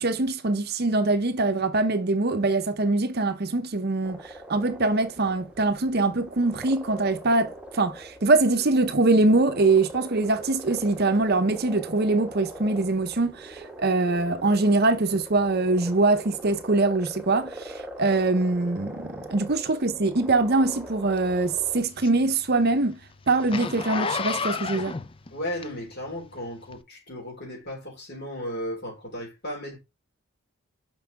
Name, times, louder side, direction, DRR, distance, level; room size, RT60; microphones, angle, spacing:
voice 1, 0.0-23.0 23.3-25.0, right 2 dB, 45° right, 0.7 m, -23 dB
sound 1, 4.0-21.8, right 1 dB, 5° right, 1.4 m, -42 dB
Zipper (clothing), 21.2-26.1 26.7-26.8, left 5 dB, 25° left, 0.5 m, -32 dB
voice 2, 25.3-29.8, equal, 45° left, 4.0 m, -35 dB
5.9 x 5.5 x 3.4 m
head